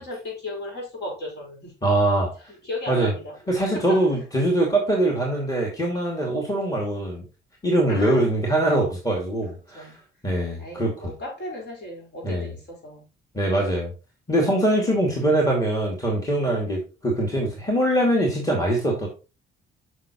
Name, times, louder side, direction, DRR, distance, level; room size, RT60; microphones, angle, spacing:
voice 1, 0.0-1.7 2.6-3.3 3.7-4.1 7.9-8.4 9.7-10.0 10.6-13.0 16.4-16.6, left 2 dB, 55° left, 5.0 m, -35 dB
voice 2, 1.8-2.3 2.9-3.1 3.5-7.2 7.6-9.9 10.2-11.1 12.2-12.5 13.3-13.9 14.3-19.1, right 1 dB, 15° left, 2.6 m, -23 dB
7.4 x 6.5 x 3.1 m
cardioid pair, 90°, 20 cm